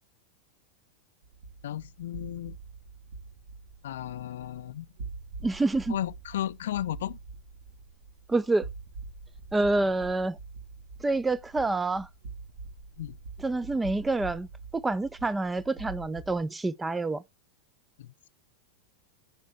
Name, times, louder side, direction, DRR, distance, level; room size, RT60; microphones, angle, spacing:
sound 1, 1.2-16.4, right 4 dB, 60° right, 2.0 m, -45 dB
voice 1, 1.6-2.6 3.8-4.9 5.9-7.2 13.0-13.2 18.0-18.1, left 12 dB, 60° left, 0.5 m, -34 dB
voice 2, 5.4-6.0 8.3-8.6 9.5-10.4 11.0-12.1 13.4-14.5 14.7-17.2, right 2 dB, 10° right, 0.5 m, -27 dB
15.0 x 5.1 x 3.3 m
figure-of-eight pair, 90°, 0 cm